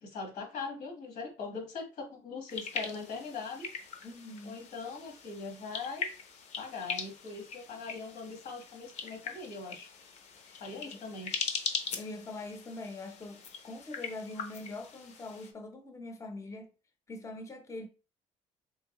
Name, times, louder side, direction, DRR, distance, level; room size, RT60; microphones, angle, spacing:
voice 1, 0.0-3.7 4.4-6.1 6.6-9.9 10.6-11.3, left 4 dB, 85° left, 1.4 m, -41 dB
sound 1, 2.5-15.5, left 5 dB, 65° left, 0.7 m, -41 dB
voice 2, 4.0-4.6 10.4-11.0 12.0-16.7 17.1-17.9, left 2 dB, 25° left, 0.6 m, -43 dB
3.7 x 3.0 x 2.9 m
cardioid pair, 115°, 12 cm